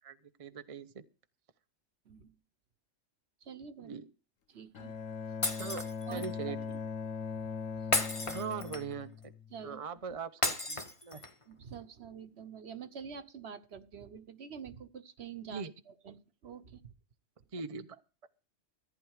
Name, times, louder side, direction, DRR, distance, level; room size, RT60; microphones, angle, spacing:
voice 1, 0.0-1.0 3.8-4.1 5.6-6.6 8.3-9.3 9.6-11.2 15.5-15.7 17.5-18.0, right 6 dB, 35° right, 9 dB, 0.6 m, -41 dB
voice 2, 3.4-3.9 4.5-5.0 6.1-6.2 9.5-9.8 11.5-16.9, right 7 dB, 55° right, 11 dB, 1.2 m, -47 dB
Bowed string instrument, 4.7-9.8, left 5 dB, 90° left, 1.3 m, -40 dB
Shatter, 5.4-6.3 7.9-9.0 10.4-11.4, left 2 dB, 25° left, 1.2 m, -33 dB
14.5 x 9.7 x 4.8 m, 0.33 s
omnidirectional pair, 1.3 m